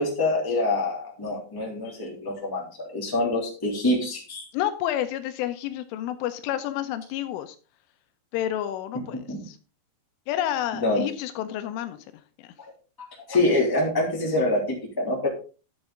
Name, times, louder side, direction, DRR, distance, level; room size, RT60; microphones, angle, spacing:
voice 1, 0.0-2.6 2.9-4.4 9.3-9.4 10.8-11.0 13.3-15.3, left 2 dB, 5° left, -2 dB, 2.2 m, -25 dB
voice 2, 4.5-7.6 8.3-9.6 10.3-12.5, left 12 dB, 85° left, 10 dB, 3.3 m, -30 dB
11.5 x 7.1 x 3.9 m, 0.36 s
omnidirectional pair, 5.7 m